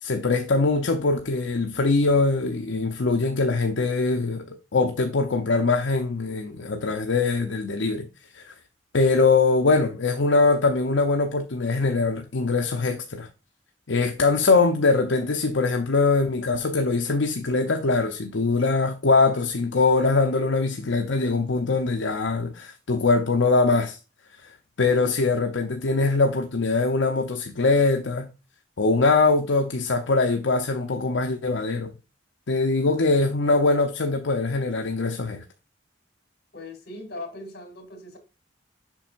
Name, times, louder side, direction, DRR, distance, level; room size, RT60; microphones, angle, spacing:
voice 1, 0.0-4.4 4.7-8.1 8.3-8.5 8.9-13.3 13.9-24.0 24.4-24.5 24.8-28.3 28.8-31.9 32.5-35.4, left 3 dB, 75° left, 0.7 m, -22 dB
voice 2, 36.5-38.2, left 2 dB, 55° left, 2.3 m, -39 dB
7.4 x 5.4 x 2.5 m
head